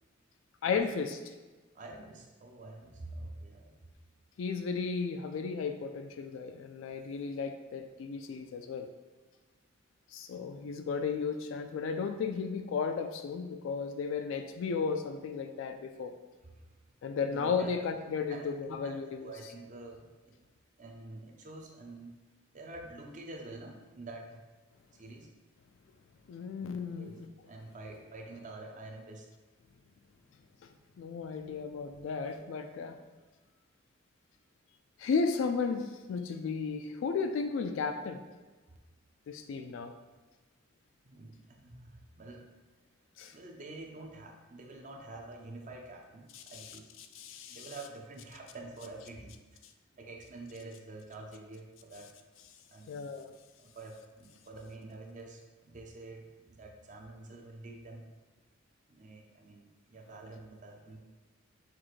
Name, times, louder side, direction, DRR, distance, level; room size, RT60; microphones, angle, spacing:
voice 1, 0.6-1.3 4.4-8.9 10.1-16.2 17.0-19.3 26.3-27.3 31.0-33.0 35.0-38.2 39.3-39.9 43.2-43.3 46.3-46.8 47.1-47.7 52.9-53.3, left 5 dB, 75° left, 7 dB, 0.3 m, -34 dB
voice 2, 1.7-3.8 16.5-16.6 17.0-17.8 18.3-20.5 20.8-22.1 22.5-24.4 24.9-25.3 26.6-26.7 27.0-29.3 41.0-42.6 43.3-46.9 47.5-49.3 49.9-52.1 52.7-53.1 53.6-58.1 58.9-61.0, right 2 dB, 40° right, 2 dB, 0.6 m, -47 dB
5.9 x 2.5 x 3.1 m, 1.3 s
head